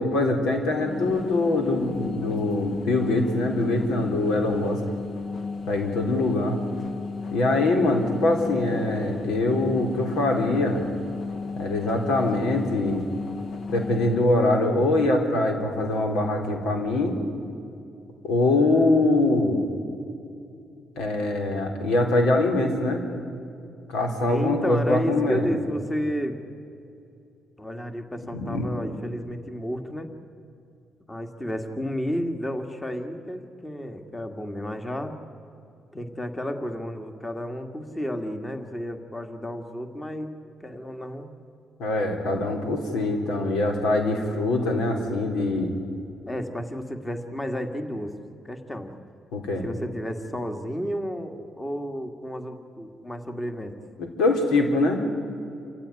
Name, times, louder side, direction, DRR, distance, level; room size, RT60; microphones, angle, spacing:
voice 1, 0.0-4.8 5.7-6.6 7.3-10.8 11.6-13.0 13.7-17.2 18.2-19.6 21.0-23.0 23.9-25.5 28.3-28.7 41.8-45.8 49.3-49.6 54.0-55.0, left 2 dB, 90° left, 4 dB, 3.9 m, -23 dB
sound 1, 0.7-14.3, left 4 dB, 55° left, 1.4 m, -34 dB
voice 2, 24.2-26.4 27.6-30.1 31.1-35.1 35.9-40.3 40.6-41.3 46.3-48.2 48.4-48.9 49.6-53.8, equal, 15° left, 6 dB, 2.0 m, -32 dB
28.5 x 15.5 x 9.9 m, 2.7 s
cardioid pair, 90°, 0 cm